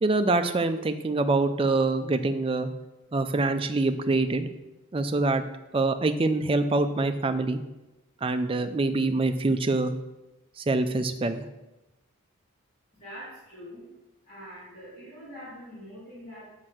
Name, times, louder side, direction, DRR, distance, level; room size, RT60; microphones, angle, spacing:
voice 1, 0.0-2.7 3.1-4.5 4.9-5.4 5.7-7.6 8.2-9.9 10.6-11.4, right 2 dB, 25° right, 8 dB, 0.4 m, -25 dB
voice 2, 13.0-13.9 14.3-16.5, equal, 30° left, -13 dB, 2.7 m, -44 dB
5.9 x 4.4 x 6.3 m, 1.0 s
head